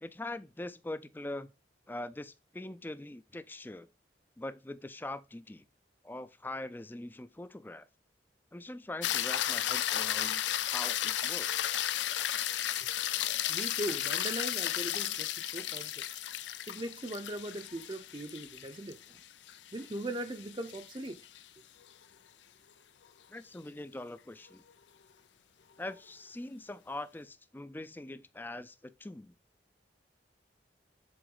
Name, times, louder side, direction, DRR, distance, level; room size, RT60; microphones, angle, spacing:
voice 1, 0.0-1.5 1.9-3.9 4.4-5.6 6.0-7.9 8.5-11.7 23.3-24.6 25.8-29.3, left 1 dB, 10° left, 0.4 m, -42 dB
sound 1, 9.0-21.4 25.9-26.0, left 12 dB, 85° left, 0.5 m, -34 dB
voice 2, 13.5-16.2 16.7-19.2 19.7-21.2, right 1 dB, 25° right, 0.6 m, -40 dB
7.8 x 4.0 x 3.8 m
head